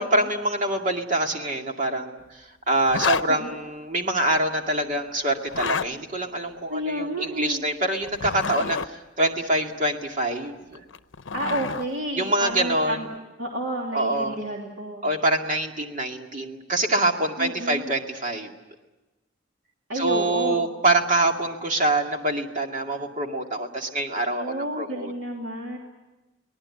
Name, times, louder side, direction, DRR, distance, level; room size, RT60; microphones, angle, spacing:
voice 1, 0.0-10.8 12.2-13.0 13.9-14.4 15.0-18.5 19.9-25.1, right 2 dB, 40° right, 3 dB, 2.3 m, -25 dB
Zipper (clothing), 2.9-3.3 5.4-5.9 8.0-8.9 10.8-11.9, left 6 dB, 85° left, 0.7 m, -28 dB
voice 2, 6.7-7.6 11.3-13.1 13.4-15.1 17.4-17.9 19.9-20.6 24.3-25.8, right 1 dB, 75° right, -1 dB, 3.0 m, -31 dB
24.0 x 19.0 x 9.8 m, 1.1 s
head